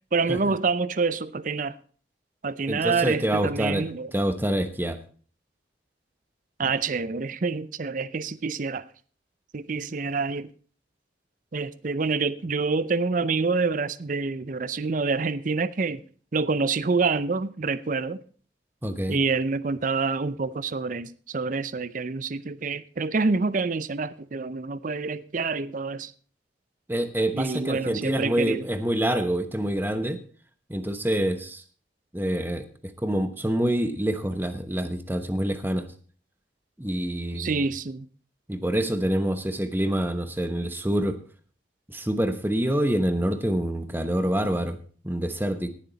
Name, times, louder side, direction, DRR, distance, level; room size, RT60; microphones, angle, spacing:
voice 1, 0.1-1.8 2.4-4.1 6.6-8.9 9.5-10.5 11.5-16.0 16.3-18.2 19.1-26.1 27.3-28.7 37.4-38.1, right 4 dB, 45° right, 0.5 m, -27 dB
voice 2, 2.7-5.0 18.8-19.2 26.9-30.2 30.7-31.6 32.1-35.9 36.8-37.5 38.5-41.2 41.9-44.8 45.0-45.7, right 1 dB, 10° right, 1.0 m, -26 dB
18.0 x 7.4 x 4.0 m
head